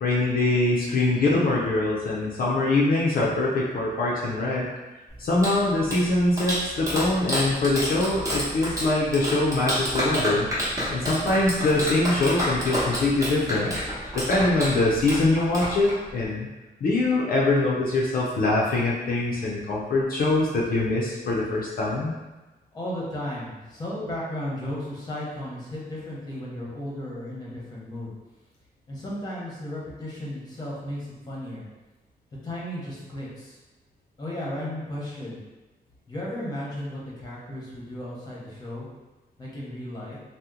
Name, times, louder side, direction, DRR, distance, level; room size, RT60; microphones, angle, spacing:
voice 1, 0.0-4.7 5.2-10.5 10.9-13.7 14.1-16.5 16.8-22.1, left 2 dB, 65° left, -5 dB, 0.5 m, -23 dB
Clapping, 5.1-16.2, equal, 20° right, 0.8 m, -30 dB
voice 2, 22.7-28.1 28.9-31.6 32.4-33.6 34.2-35.4 36.1-38.9 39.4-40.2, left 1 dB, 25° left, -5 dB, 0.8 m, -34 dB
2.8 x 2.1 x 3.6 m, 1.1 s
wide cardioid pair, 175°, 16 cm